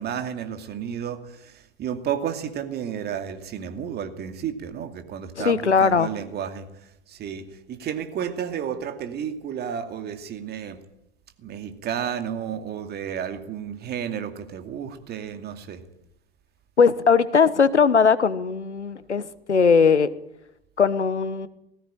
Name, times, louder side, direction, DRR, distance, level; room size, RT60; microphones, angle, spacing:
voice 1, 0.0-6.7 7.1-10.8 11.4-15.8, right 8 dB, 30° right, 8 dB, 2.5 m, -32 dB
voice 2, 5.4-6.1 16.8-20.1 20.8-21.5, left 5 dB, 90° left, 16 dB, 1.2 m, -19 dB
19.0 x 16.0 x 8.9 m, 0.83 s
figure-of-eight pair, 100°, 33 cm